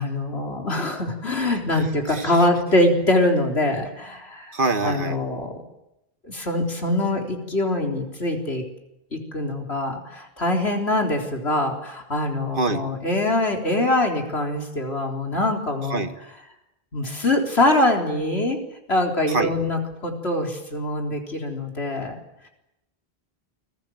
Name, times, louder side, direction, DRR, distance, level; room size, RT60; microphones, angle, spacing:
voice 1, 0.0-4.5 4.8-5.6 6.2-8.6 9.1-16.0 16.9-18.6 18.9-22.2, left 1 dB, 90° left, 2 dB, 4.2 m, -23 dB
voice 2, 4.5-5.2 12.6-12.8 15.9-16.1 19.3-19.5, right 3 dB, 55° right, 7 dB, 1.9 m, -24 dB
29.5 x 22.0 x 7.9 m, 0.89 s
omnidirectional pair, 1.0 m